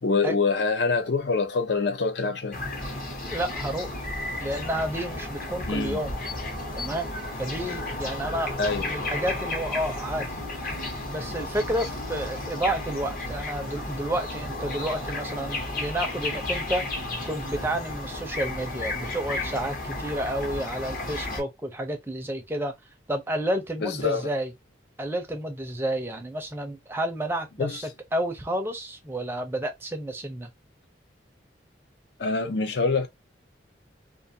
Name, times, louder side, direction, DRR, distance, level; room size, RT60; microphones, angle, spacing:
voice 1, 0.0-2.6 5.7-6.0 8.6-8.9 23.8-24.3 27.6-27.8 32.2-33.1, left 4 dB, 65° left, 0.5 m, -25 dB
sound 1, 2.5-21.4, left 2 dB, 45° left, 1.0 m, -33 dB
voice 2, 3.3-3.9 4.4-6.2 6.8-7.1 7.4-10.4 11.1-16.8 17.3-22.7 23.1-24.5 25.0-30.5, right 1 dB, 10° right, 0.5 m, -30 dB
2.5 x 2.4 x 2.6 m
head